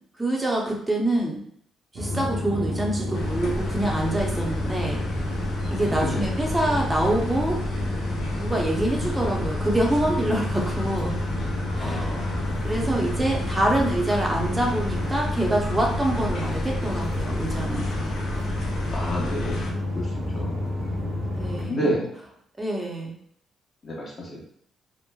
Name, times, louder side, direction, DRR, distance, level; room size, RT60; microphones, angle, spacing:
voice 1, 0.2-1.4 1.9-5.0 5.7-7.6 8.4-11.2 11.7-12.1 12.6-17.9 21.3-21.9 22.6-23.1, right 1 dB, 15° right, -1 dB, 0.6 m, -26 dB
sound 1, 1.9-21.7, left 1 dB, 65° right, 0.7 m, -29 dB
sound 2, 3.1-19.7, left 1 dB, 70° left, 0.7 m, -33 dB
voice 2, 5.9-6.2 11.8-12.7 18.9-19.6 19.9-20.1 20.3-20.6 21.7-22.1 23.8-24.4, equal, 40° left, -3 dB, 1.0 m, -30 dB
3.0 x 2.1 x 2.2 m, 0.65 s
cardioid pair, 90°, 0 cm